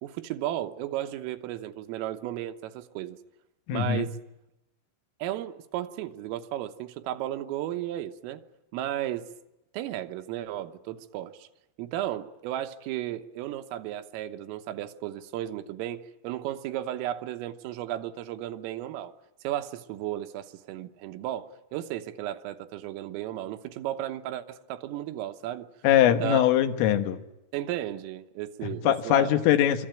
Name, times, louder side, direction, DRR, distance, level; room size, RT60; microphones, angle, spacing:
voice 1, 0.0-3.2 3.7-4.2 5.2-8.4 8.7-9.3 9.7-11.5 11.8-19.1 19.4-25.7 26.1-26.5 27.5-29.3, right 12 dB, 85° right, 3.7 m, -34 dB
voice 2, 3.7-4.1 25.8-27.2 28.9-29.9, left 11 dB, 80° left, 4.0 m, -22 dB
26.5 x 24.5 x 9.0 m
omnidirectional pair, 5.8 m